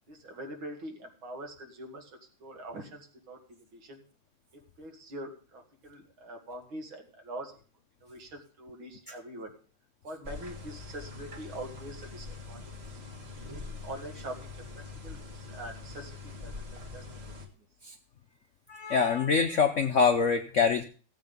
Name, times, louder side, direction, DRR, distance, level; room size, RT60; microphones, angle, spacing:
voice 1, 0.1-2.1 2.4-4.0 4.8-7.5 8.0-9.5 10.0-13.0 13.5-14.6 15.0-16.5 16.9-17.0, right 1 dB, 65° right, 3 dB, 2.9 m, -43 dB
sound 1, 10.2-17.5, left 4 dB, 30° right, 1.8 m, -43 dB
voice 2, 18.7-20.8, left 5 dB, 75° left, 6 dB, 0.6 m, -25 dB
16.0 x 8.1 x 5.3 m, 0.40 s
omnidirectional pair, 2.4 m